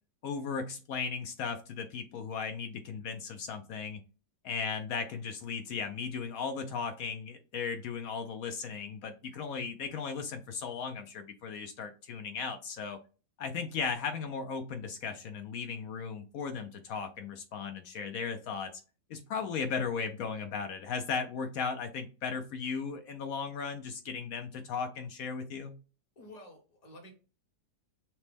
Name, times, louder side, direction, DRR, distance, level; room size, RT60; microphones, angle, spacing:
voice 1, 0.2-4.0 4.4-13.0 13.4-18.7 19.1-25.8, left 5 dB, 70° left, 7 dB, 0.8 m, -36 dB
voice 2, 26.2-27.1, left 1 dB, 25° left, 1 dB, 1.0 m, -51 dB
5.9 x 2.1 x 3.2 m, 0.35 s
omnidirectional pair, 1.9 m